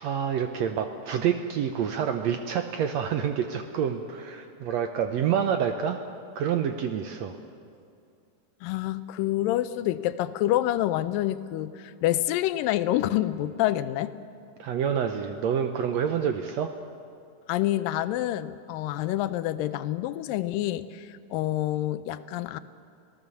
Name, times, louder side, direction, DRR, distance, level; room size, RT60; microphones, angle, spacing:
voice 1, 0.0-6.0 6.3-7.4 14.6-16.7, right 8 dB, 75° right, 7 dB, 1.6 m, -27 dB
voice 2, 8.6-14.1 17.5-22.6, left 14 dB, 85° left, 14 dB, 2.4 m, -27 dB
26.5 x 17.5 x 7.0 m, 2.4 s
omnidirectional pair, 3.9 m